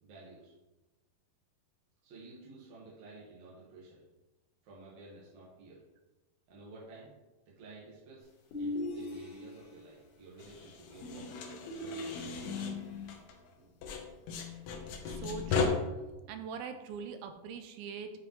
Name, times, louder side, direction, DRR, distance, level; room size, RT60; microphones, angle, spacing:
voice 1, 0.0-0.5 2.0-4.0 4.6-5.8 6.5-7.1 7.5-8.3 8.6-11.3 11.7-12.3 13.5-13.8, right 2 dB, 60° right, -6 dB, 2.3 m, -52 dB
sound 1, 8.5-9.8 11.0-13.2, left 2 dB, 70° left, 2.9 m, -39 dB
sound 2, 10.4-13.5 13.8-15.7, left 5 dB, 85° left, 1.5 m, -37 dB
voice 2, 15.0-15.8 16.3-18.1, right 6 dB, 85° right, 8 dB, 2.4 m, -42 dB
9.2 x 5.1 x 3.1 m, 1.1 s
omnidirectional pair, 4.4 m